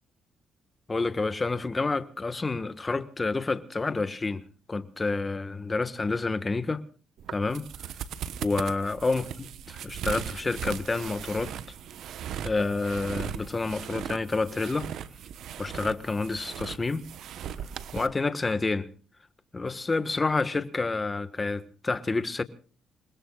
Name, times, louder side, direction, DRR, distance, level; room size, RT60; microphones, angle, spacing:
voice 1, 0.9-4.4 4.7-6.8 7.3-7.6 8.4-11.5 12.4-14.9 15.6-17.0 17.9-18.9 19.5-22.4, left 3 dB, 25° left, 1.5 m, -29 dB
sound 1, 7.2-18.1, right 9 dB, 75° right, 1.1 m, -38 dB
28.0 x 20.5 x 2.4 m
cardioid pair, 90°, 0 cm